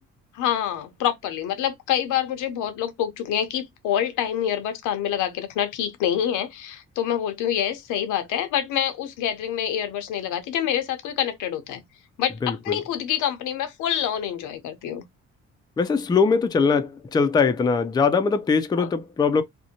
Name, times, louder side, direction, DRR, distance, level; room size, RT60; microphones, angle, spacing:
voice 1, 0.3-11.8 12.2-15.0 18.7-18.9, left 10 dB, 90° left, 0.6 m, -26 dB
voice 2, 12.4-12.8 15.8-19.4, left 5 dB, 15° left, 0.3 m, -21 dB
2.6 x 2.1 x 2.7 m
cardioid pair, 90°, 30 cm